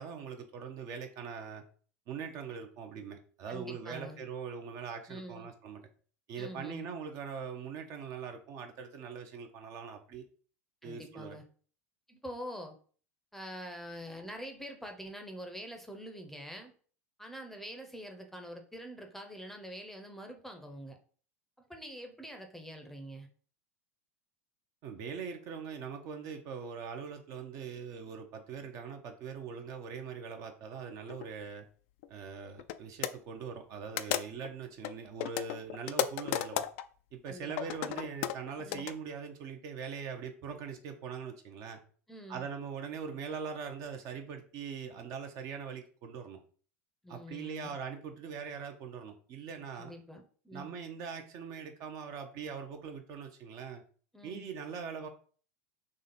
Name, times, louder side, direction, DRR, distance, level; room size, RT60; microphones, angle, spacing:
voice 1, 0.0-1.6 2.1-5.8 6.3-10.2 10.8-11.4 24.8-31.6 32.1-36.6 37.1-41.8 42.3-46.4 47.1-49.9 50.5-53.8 54.2-55.1, right 6 dB, 45° right, 5 dB, 0.8 m, -42 dB
voice 2, 3.5-4.2 5.1-5.5 6.4-6.8 10.8-11.4 12.1-12.8 13.3-16.7 17.2-21.0 21.6-23.3 37.3-37.8 38.6-38.9 42.1-42.5 47.0-47.7 49.7-50.7 54.1-54.5, equal, 5° left, 4 dB, 0.7 m, -45 dB
sound 1, 31.1-31.3 32.0-32.1 32.6-32.8 33.0-33.1 34.0-34.5 34.8-36.8 37.5-38.9, left 11 dB, 55° left, 0.3 m, -33 dB
3.8 x 3.2 x 4.1 m, 0.43 s
figure-of-eight pair, 80°, 8 cm